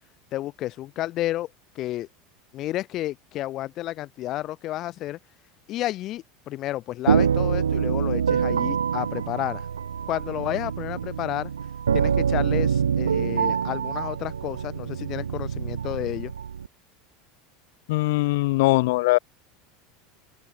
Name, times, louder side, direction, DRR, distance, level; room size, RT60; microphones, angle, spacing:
voice 1, 0.3-1.5 1.7-2.1 2.5-5.2 5.7-9.7 10.1-11.5 11.9-16.3, left 15 dB, 40° left, 1.2 m, -31 dB
sound 1, 7.1-16.7, right 7 dB, 75° right, 1.5 m, -25 dB
voice 2, 17.9-19.2, left 21 dB, 60° left, 0.6 m, -21 dB
open air
figure-of-eight pair, 75°, 0 cm